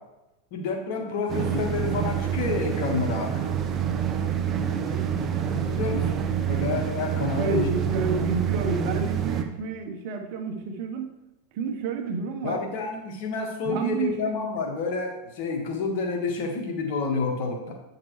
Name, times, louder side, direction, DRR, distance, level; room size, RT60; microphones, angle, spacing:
voice 1, 0.5-3.5 5.5-7.7 12.4-17.7, left 4 dB, 60° left, 2 dB, 1.6 m, -29 dB
sound 1, 1.3-9.4, right 8 dB, 35° right, 0.8 m, -27 dB
voice 2, 4.8-5.4 7.4-11.1 11.5-12.6 13.6-14.4, right 4 dB, 60° right, 5 dB, 1.1 m, -30 dB
8.8 x 5.9 x 3.2 m, 0.95 s
hypercardioid pair, 105°, 0 cm